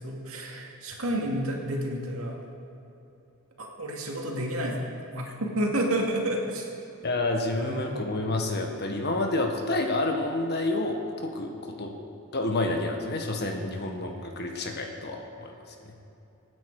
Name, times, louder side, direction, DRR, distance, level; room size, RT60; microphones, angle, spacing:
voice 1, 0.0-2.4 3.6-4.9 5.1-6.7 7.6-7.9, right 1 dB, 70° right, 0 dB, 2.4 m, -30 dB
voice 2, 7.0-11.9 12.3-15.5, left 2 dB, 50° left, 3 dB, 1.6 m, -29 dB
24.5 x 9.6 x 4.9 m, 2.9 s
head